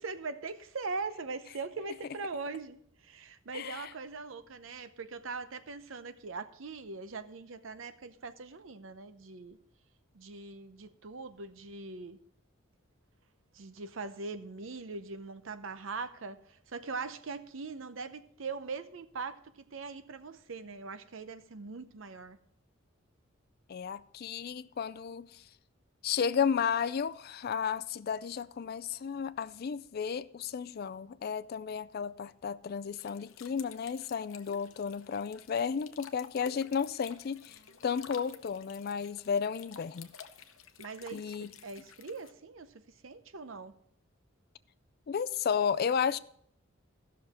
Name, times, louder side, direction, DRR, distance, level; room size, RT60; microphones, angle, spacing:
voice 1, 0.0-9.6 10.1-12.2 13.5-19.4 19.7-22.4 40.8-42.7 43.0-43.7, right 4 dB, 70° right, 0.7 m, -41 dB
voice 2, 3.5-3.9 23.7-25.4 26.0-37.6 37.8-40.1 41.1-41.5 45.1-46.2, left 6 dB, 50° left, 0.4 m, -33 dB
sound 1, 32.9-42.3, left 7 dB, 80° left, 0.7 m, -52 dB
14.5 x 6.3 x 4.2 m
head